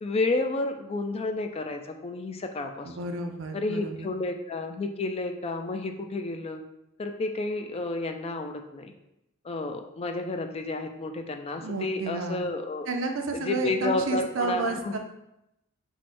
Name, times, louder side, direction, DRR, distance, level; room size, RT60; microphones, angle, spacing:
voice 1, 0.0-3.0 3.5-6.6 7.0-8.9 9.4-12.9 13.3-14.9, left 2 dB, 30° left, 5 dB, 0.4 m, -31 dB
voice 2, 2.8-4.1 11.5-12.4 12.9-15.0, right 3 dB, 65° right, 5 dB, 0.5 m, -31 dB
4.5 x 2.2 x 4.2 m, 0.85 s
head